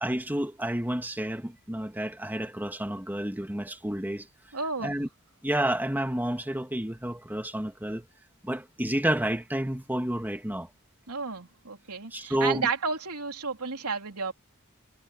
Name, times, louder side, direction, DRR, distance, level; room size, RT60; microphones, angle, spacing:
voice 1, 0.0-4.3 4.8-5.1 5.4-8.0 8.4-10.7 12.1-12.7, right 1 dB, 10° right, 1.9 m, -30 dB
voice 2, 4.5-5.0 11.1-14.3, right 5 dB, 85° right, 3.3 m, -32 dB
head